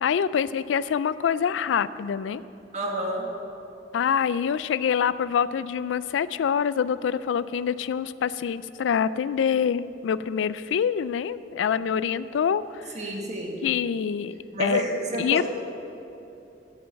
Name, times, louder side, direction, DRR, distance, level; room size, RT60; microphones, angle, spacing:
voice 1, 0.0-2.4 3.9-12.9 13.6-14.8 15.2-15.5, left 7 dB, 85° left, 16 dB, 0.3 m, -25 dB
voice 2, 2.7-3.3 12.9-13.6 14.5-15.5, right 1 dB, 40° right, 0 dB, 1.6 m, -29 dB
8.1 x 7.8 x 8.5 m, 2.8 s
head